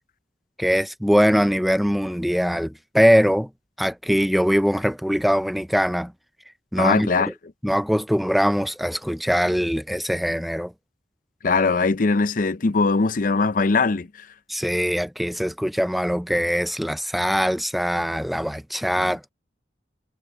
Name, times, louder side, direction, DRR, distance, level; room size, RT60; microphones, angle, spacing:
voice 1, 0.6-3.5 3.8-6.1 6.7-7.1 7.6-10.7 14.5-19.3, equal, ahead, 0.4 m, -22 dB
voice 2, 6.8-7.3 11.4-14.3 19.0-19.1, left 4 dB, 50° left, 0.6 m, -21 dB
head